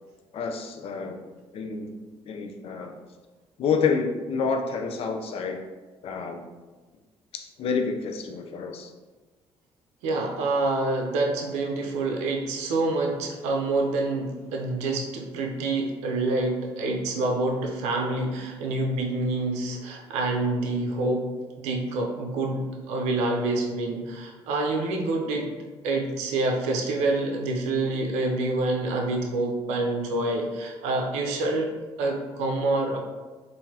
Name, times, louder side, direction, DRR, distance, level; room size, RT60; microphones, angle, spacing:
voice 1, 0.3-1.2 1.5-2.0 2.3-3.0 3.6-5.6 6.0-6.4 7.3-8.9, left 5 dB, 60° left, 4 dB, 0.5 m, -28 dB
voice 2, 10.0-21.3 21.6-25.5 25.8-31.7 32.0-33.0, right 2 dB, 85° right, 1 dB, 0.5 m, -27 dB
3.8 x 2.6 x 2.7 m, 1.3 s
supercardioid pair, 75°, 11 cm